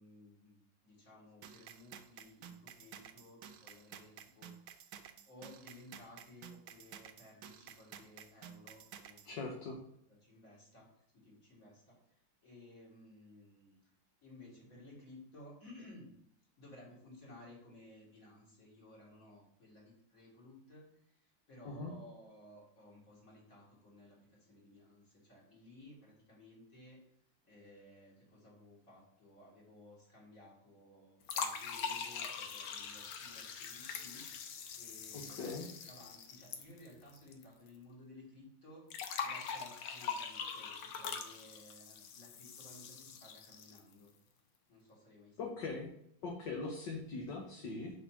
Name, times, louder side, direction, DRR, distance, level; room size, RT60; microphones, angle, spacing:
voice 1, 0.0-9.4 10.1-10.9 11.1-13.9 14.2-16.1 16.6-27.0 27.4-44.1 44.7-45.6, left 1 dB, 40° left, -4 dB, 3.4 m, -57 dB
sound 1, 1.4-9.3, right 9 dB, 75° right, 1.4 m, -53 dB
voice 2, 9.2-9.8 21.6-21.9 35.1-35.7 45.4-45.9 46.2-47.9, left 3 dB, 60° left, 0 dB, 1.7 m, -41 dB
sound 2, 31.2-37.4 37.7-37.8 38.9-43.9, left 6 dB, 85° left, 1.7 m, -43 dB
5.9 x 5.8 x 5.9 m, 0.70 s
omnidirectional pair, 2.3 m